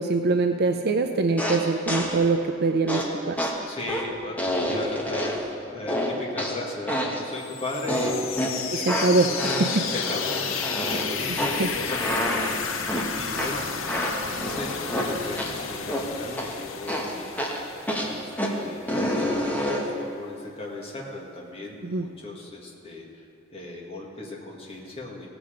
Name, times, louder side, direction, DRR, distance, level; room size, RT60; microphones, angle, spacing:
voice 1, 0.0-3.5 8.7-9.9 11.3-11.7 21.8-22.1, right 3 dB, 55° right, 5 dB, 0.5 m, -24 dB
sound 1, 1.4-2.3 2.9-5.6 5.9-7.3 7.9-15.6 15.9-16.6 16.9-20.0, equal, 10° left, 1.2 m, -29 dB
voice 2, 3.7-5.3 5.7-8.6 8.9-13.6 14.2-17.4 18.1-23.2 23.5-25.3, left 2 dB, 30° left, -3 dB, 1.9 m, -37 dB
sound 2, 7.4-19.1, left 6 dB, 70° left, 0.7 m, -33 dB
17.0 x 7.0 x 5.1 m, 2.4 s
head